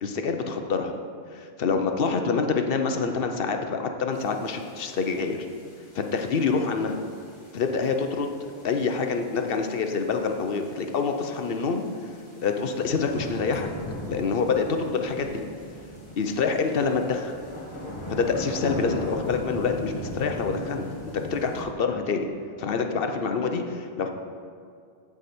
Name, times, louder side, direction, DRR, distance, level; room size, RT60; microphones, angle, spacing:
voice 1, 0.0-1.0 1.3-5.5 5.9-7.0 7.5-8.3 8.6-11.8 12.4-13.7 14.1-15.4 16.2-17.2 18.1-20.9 21.1-22.3 22.6-24.1, left 5 dB, 65° left, 5 dB, 0.9 m, -26 dB
sound 1, 4.1-21.6, left 1 dB, 30° left, 1.9 m, -39 dB
14.5 x 4.9 x 4.3 m, 2.3 s
omnidirectional pair, 1.1 m